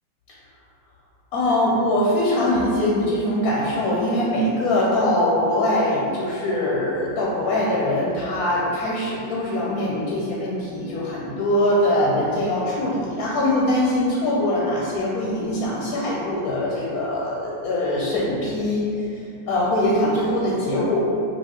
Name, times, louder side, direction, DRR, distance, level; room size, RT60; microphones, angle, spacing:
voice 1, 1.3-19.1 19.5-21.1, left 1 dB, 65° left, -5 dB, 0.9 m, -22 dB
5.6 x 2.4 x 3.5 m, 2.7 s
omnidirectional pair, 2.1 m